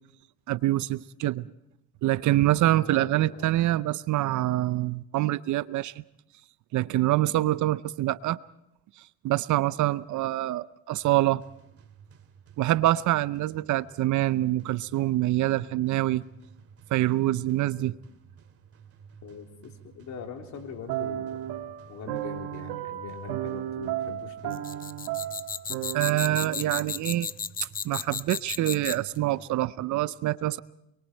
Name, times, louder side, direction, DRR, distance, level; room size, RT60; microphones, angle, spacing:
voice 1, 0.5-1.5 2.0-5.9 6.7-8.4 9.2-11.4 12.6-16.2 16.9-18.0 25.9-27.3 27.8-30.6, right 15 dB, 55° right, 0.7 m, -25 dB
voice 2, 2.8-3.5 17.5-17.9 19.2-21.4 21.9-24.6, left 6 dB, 50° left, 3.7 m, -42 dB
sound 1, 11.0-30.0, right 7 dB, 40° right, 2.6 m, -53 dB
sound 2, 20.9-27.2, right 12 dB, 75° right, 1.7 m, -34 dB
sound 3, 24.5-29.2, left 7 dB, 25° left, 0.7 m, -34 dB
28.5 x 23.0 x 4.5 m
supercardioid pair, 85°, 35 cm